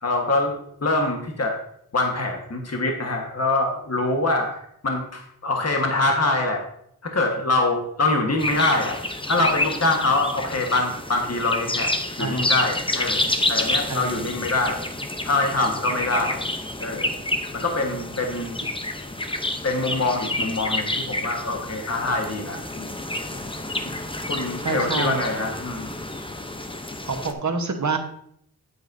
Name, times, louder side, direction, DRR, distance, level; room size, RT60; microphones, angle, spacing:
voice 1, 0.0-0.6 0.8-1.6 1.9-6.6 7.0-9.0 9.3-11.9 12.2-14.8 15.2-16.5 16.8-17.2 17.5-18.6 19.6-22.9 23.8-25.9, left 2 dB, 40° left, 2 dB, 1.4 m, -24 dB
sound 1, 8.4-27.3, left 1 dB, 15° left, 0.7 m, -29 dB
voice 2, 12.2-12.5 13.9-14.3 24.6-25.3 27.1-28.0, right 4 dB, 50° right, 5 dB, 1.2 m, -27 dB
8.3 x 8.2 x 2.7 m, 0.69 s
wide cardioid pair, 70°, 38 cm